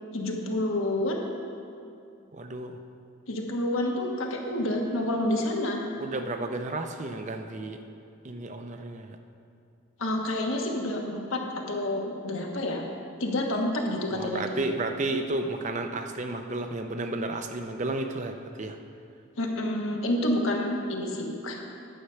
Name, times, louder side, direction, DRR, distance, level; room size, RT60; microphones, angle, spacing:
voice 1, 0.1-1.2 3.3-5.8 10.0-12.8 13.2-14.6 19.4-21.6, left 1 dB, 70° left, 0 dB, 1.4 m, -28 dB
voice 2, 2.3-2.8 6.0-7.8 8.2-9.2 14.1-18.8, right 2 dB, 35° right, 6 dB, 0.5 m, -32 dB
9.9 x 7.8 x 5.6 m, 2.5 s
head